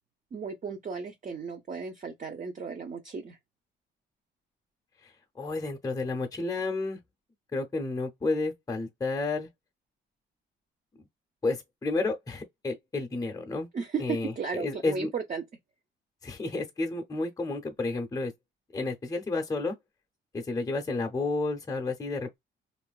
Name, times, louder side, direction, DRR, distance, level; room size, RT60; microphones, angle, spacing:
voice 1, 0.3-3.4 13.7-15.4, right 5 dB, 40° right, 0.7 m, -35 dB
voice 2, 5.4-7.0 7.5-9.5 11.4-13.7 14.0-15.1 16.2-18.3 18.7-19.7 20.3-22.4, left 3 dB, 20° left, 0.6 m, -31 dB
2.9 x 2.5 x 2.3 m
cardioid pair, 90°, 20 cm